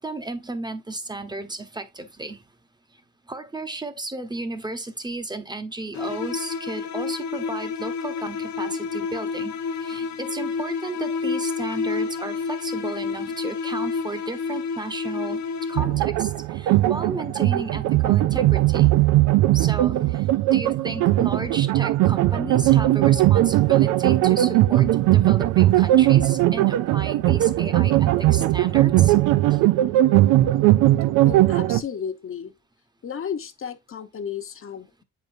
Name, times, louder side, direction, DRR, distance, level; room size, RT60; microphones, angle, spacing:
voice 1, 0.0-2.4 3.3-15.4 15.7-18.9 19.5-29.2 29.5-29.6, right 2 dB, 15° right, 1.0 m, -34 dB
sound 1, 5.9-16.2, left 5 dB, 70° left, 1.1 m, -29 dB
sound 2, 15.8-31.8, right 15 dB, 90° right, 0.5 m, -19 dB
voice 2, 31.2-32.5 33.0-35.0, left 7 dB, 45° left, 0.9 m, -33 dB
7.7 x 5.2 x 2.6 m
cardioid pair, 90°, 30 cm